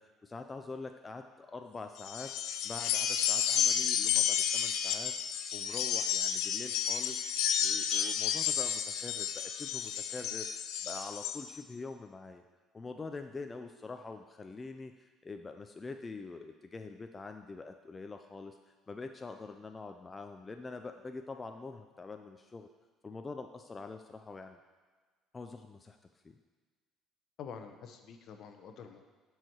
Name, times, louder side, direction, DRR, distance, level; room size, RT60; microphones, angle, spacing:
voice 1, 0.2-2.3 2.6-5.1 5.5-7.3 7.6-12.4 12.7-18.6 18.9-22.7 23.0-24.6 25.3-26.0 26.2-26.4, left 3 dB, 25° left, 6 dB, 0.5 m, -45 dB
sound 1, 2.0-11.4, left 9 dB, 80° left, 0.6 m, -31 dB
voice 2, 27.4-29.1, left 6 dB, 60° left, 6 dB, 0.9 m, -47 dB
12.0 x 4.8 x 4.6 m, 1.4 s
cardioid pair, 100°, 0 cm